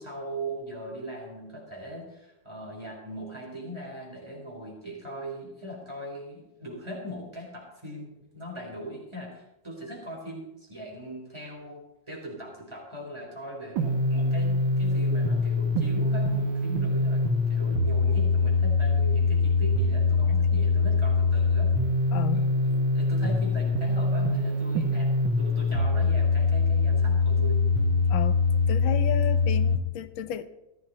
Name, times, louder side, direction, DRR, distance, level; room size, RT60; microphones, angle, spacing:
voice 1, 0.0-17.2 17.5-21.7 22.3-25.1 25.4-27.6, equal, 15° right, -2 dB, 4.4 m, -39 dB
sound 1, 13.8-29.8, left 3 dB, 85° right, 1.9 m, -24 dB
voice 2, 22.1-22.5 28.1-28.4 28.7-30.5, left 11 dB, 85° left, 11 dB, 1.6 m, -32 dB
14.5 x 13.5 x 4.3 m, 0.94 s
omnidirectional pair, 2.1 m